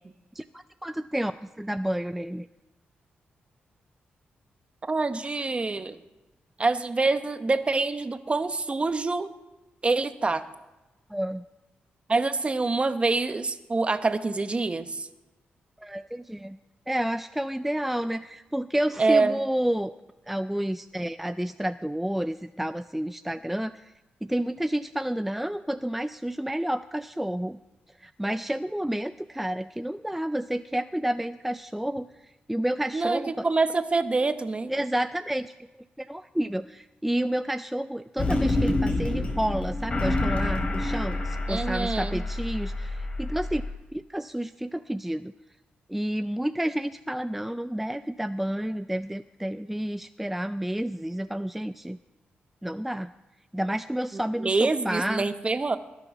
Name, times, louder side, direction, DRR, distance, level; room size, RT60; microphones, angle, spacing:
voice 1, 0.3-1.3 1.6-2.5 11.1-11.4 15.8-16.6 16.9-19.9 20.3-23.9 24.2-27.6 28.0-33.5 34.7-35.5 36.0-43.6 43.9-45.3 45.9-52.0 52.6-53.1 53.5-55.3, right 1 dB, 5° right, 11 dB, 0.4 m, -30 dB
voice 2, 4.8-6.0 6.6-9.3 9.8-10.4 12.1-15.1 19.0-19.4 32.9-34.7 41.5-42.2 54.1-55.8, right 3 dB, 30° right, 10 dB, 1.0 m, -26 dB
sound 1, 38.2-43.7, left 2 dB, 30° left, 3.1 m, -28 dB
20.5 x 6.9 x 6.0 m, 1.1 s
cardioid pair, 75°, 4 cm